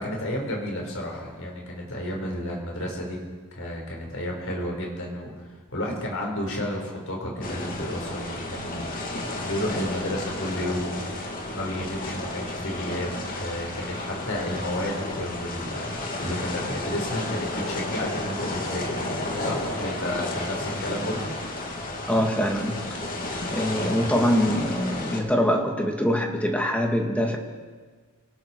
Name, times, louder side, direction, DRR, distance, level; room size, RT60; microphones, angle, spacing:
voice 1, 0.0-3.2 3.5-8.9 9.4-11.2 11.5-15.9 16.2-19.1 19.4-21.3, left 1 dB, 60° left, -1 dB, 5.4 m, -32 dB
sound 1, 7.4-25.2, left 2 dB, 40° left, 2.6 m, -32 dB
voice 2, 22.1-22.8 23.5-27.4, equal, 5° left, 2 dB, 2.1 m, -24 dB
29.5 x 18.5 x 4.8 m, 1.5 s
head